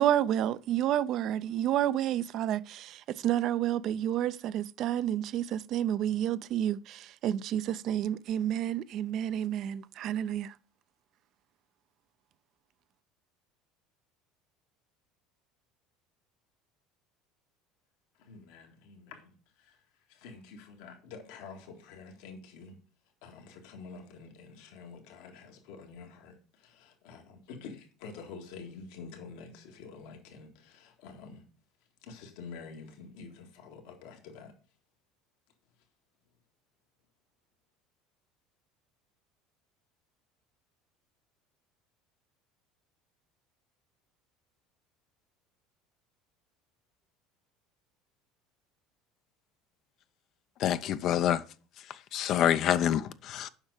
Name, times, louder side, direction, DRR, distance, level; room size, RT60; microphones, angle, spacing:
voice 1, 0.0-10.5, right 11 dB, 55° right, 0.5 m, -30 dB
voice 2, 18.2-19.8 20.1-22.8 23.2-31.5 32.0-34.5, left 5 dB, 80° left, 1.8 m, -48 dB
voice 3, 50.6-51.4 52.1-53.5, left 10 dB, 55° left, 0.5 m, -27 dB
7.3 x 5.4 x 6.3 m
supercardioid pair, 105°, 0 cm